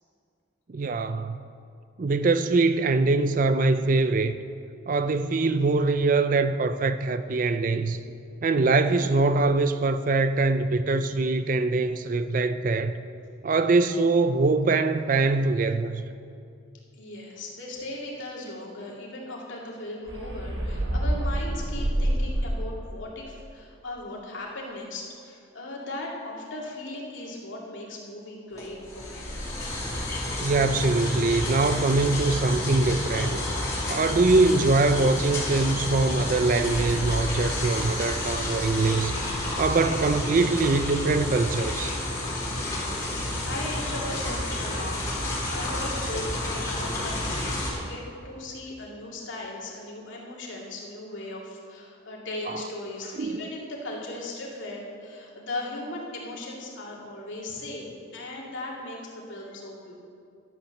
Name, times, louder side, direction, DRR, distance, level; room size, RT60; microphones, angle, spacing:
voice 1, 0.7-1.4 2.0-4.4 4.9-8.0 8.4-13.0 13.4-16.1 30.4-33.4 33.9-39.2 39.6-41.9 52.5-52.6 53.2-53.4, right 3 dB, 40° right, 0.4 m, -23 dB
voice 2, 17.0-29.5 42.9-59.9, left 2 dB, 65° left, 2.3 m, -38 dB
sound 1, 20.1-22.9, right 1 dB, 60° right, 1.4 m, -27 dB
sound 2, 28.5-47.7, left 1 dB, 15° left, 2.7 m, -30 dB
11.5 x 8.6 x 6.5 m
head